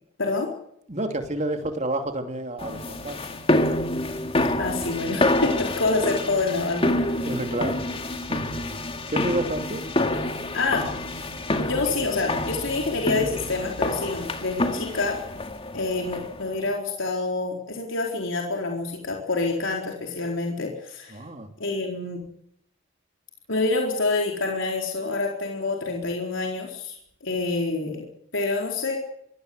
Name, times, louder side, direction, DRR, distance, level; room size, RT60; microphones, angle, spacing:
voice 1, 0.9-3.2 7.2-8.4 9.1-9.8 21.1-21.5, right 1 dB, 35° right, 6 dB, 2.6 m, -30 dB
sound 1, 2.6-16.5, left 1 dB, 25° left, 2.1 m, -27 dB
voice 2, 4.6-7.2 10.5-10.9 11.6-15.2 15.7-21.2 21.6-22.2 23.5-28.1 28.3-29.0, left 3 dB, 65° left, 0 dB, 4.3 m, -27 dB
23.5 x 18.0 x 8.0 m, 0.73 s
head